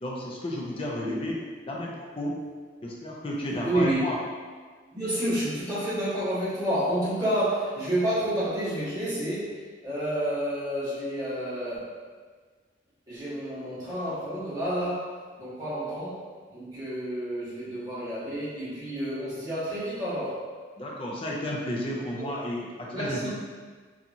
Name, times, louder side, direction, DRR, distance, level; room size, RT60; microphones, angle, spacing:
voice 1, 0.0-1.4 1.7-2.3 2.8-4.2 20.8-23.3, left 1 dB, 30° left, -3 dB, 0.4 m, -32 dB
voice 2, 3.6-4.1 4.9-12.0 13.1-16.3 16.5-20.5 22.2-22.3 22.9-23.3, right 1 dB, 20° right, -13 dB, 1.2 m, -30 dB
2.8 x 2.4 x 2.6 m, 1.5 s
head